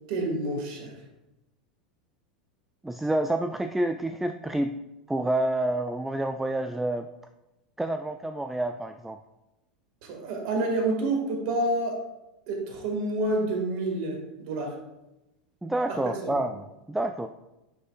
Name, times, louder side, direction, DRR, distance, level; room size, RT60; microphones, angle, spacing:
voice 1, 0.1-0.9 10.0-12.0 12.5-14.7 15.9-16.4, right 2 dB, 50° right, 2 dB, 1.9 m, -28 dB
voice 2, 2.8-4.8 5.1-7.1 7.8-9.2 15.6-17.3, right 1 dB, 5° right, 7 dB, 0.3 m, -28 dB
10.0 x 5.4 x 2.4 m, 0.97 s
figure-of-eight pair, 85°, 4 cm